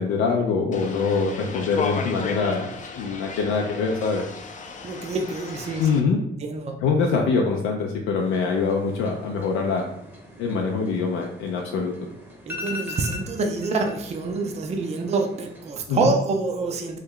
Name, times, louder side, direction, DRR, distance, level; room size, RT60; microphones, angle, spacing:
voice 1, 0.0-2.7 3.0-4.2 5.8-6.2 6.8-9.9 10.4-11.9 15.9-16.1, left 5 dB, 90° left, 1 dB, 0.4 m, -24 dB
sound 1, 0.7-6.0, left 4 dB, 40° left, 0.5 m, -34 dB
voice 2, 4.8-5.9 6.4-6.8 12.5-17.0, right 3 dB, 35° right, 3 dB, 0.4 m, -26 dB
sound 2, 8.2-15.7, left 2 dB, 10° right, 0.8 m, -41 dB
3.1 x 2.2 x 3.6 m, 0.80 s
cardioid pair, 90°, 20 cm